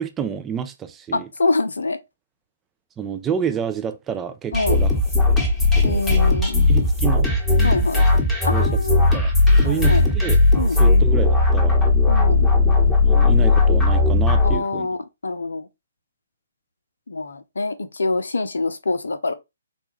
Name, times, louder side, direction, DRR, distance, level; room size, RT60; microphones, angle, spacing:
voice 1, 0.0-1.3 3.0-4.9 5.7-6.0 6.7-7.3 8.5-8.8 9.1-9.3 9.6-10.4 10.8-11.8 13.1-14.9, right 7 dB, 15° right, 0.4 m, -28 dB
voice 2, 1.1-2.0 4.5-4.8 5.8-6.6 7.6-8.0 8.4-9.0 9.6-10.1 10.6-10.8 12.1-12.5 14.4-15.7 17.1-19.3, left 3 dB, 70° left, 0.6 m, -25 dB
sound 1, 4.5-14.6, left 3 dB, 10° left, 1.1 m, -17 dB
4.1 x 2.3 x 3.1 m
figure-of-eight pair, 135°, 0 cm